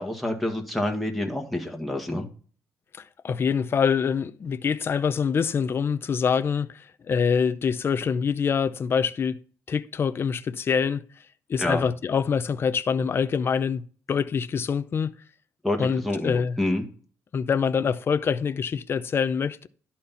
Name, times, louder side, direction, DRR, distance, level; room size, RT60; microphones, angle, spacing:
voice 1, 0.0-2.3 11.6-11.9 15.6-16.8, left 1 dB, ahead, 1.8 m, -28 dB
voice 2, 3.2-6.7 7.1-9.4 9.7-11.0 11.5-13.8 14.1-15.1 15.8-16.5 17.3-19.7, left 6 dB, 40° left, 0.6 m, -25 dB
11.5 x 4.4 x 5.6 m
cardioid pair, 110°, 6 cm